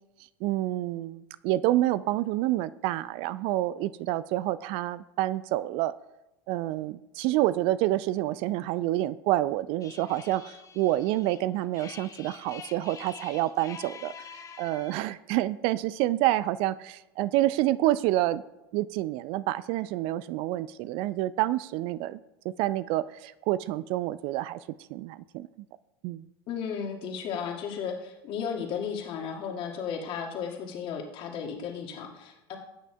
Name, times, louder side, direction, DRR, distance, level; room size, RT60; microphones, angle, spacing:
voice 1, 0.4-5.9 6.5-18.4 18.7-22.2 22.4-24.6 24.9-25.5 26.0-26.3, right 15 dB, 45° right, 17 dB, 0.4 m, -28 dB
sound 1, 9.8-15.1, left 7 dB, 25° left, 1.0 m, -47 dB
voice 2, 26.5-32.6, left 7 dB, 45° left, 1 dB, 2.1 m, -34 dB
18.5 x 9.2 x 2.3 m, 0.97 s
figure-of-eight pair, 80°, 13 cm